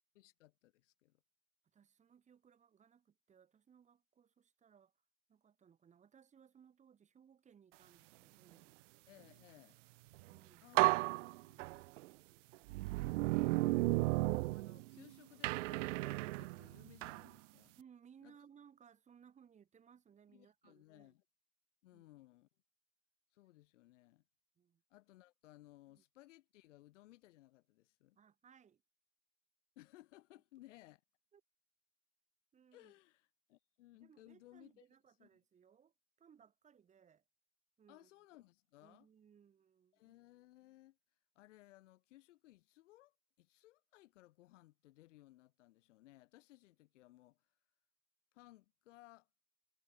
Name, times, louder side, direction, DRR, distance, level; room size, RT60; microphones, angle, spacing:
voice 1, 0.1-1.2 9.1-9.8 10.6-11.6 13.3-17.8 18.2-18.4 20.3-21.2 21.8-22.5 23.3-24.2 24.9-28.2 29.7-31.0 32.7-34.8 35.2-35.3 37.9-39.1 39.9-41.0 41.3-47.5 48.3-49.3, left 17 dB, 70° left, 5.0 m, -62 dB
voice 2, 1.7-4.9 5.3-8.7 10.3-10.8 17.8-21.1 21.9-22.1 24.6-24.8 25.9-26.0 28.1-28.8 31.3-31.4 32.5-32.9 34.0-37.2 37.8-38.1 38.8-40.1, right 7 dB, 20° right, 5.9 m, -65 dB
sound 1, 10.2-10.3 10.8-12.1 12.7-15.0 15.4-17.3, right 21 dB, 75° right, 0.5 m, -34 dB
supercardioid pair, 155°, 37 cm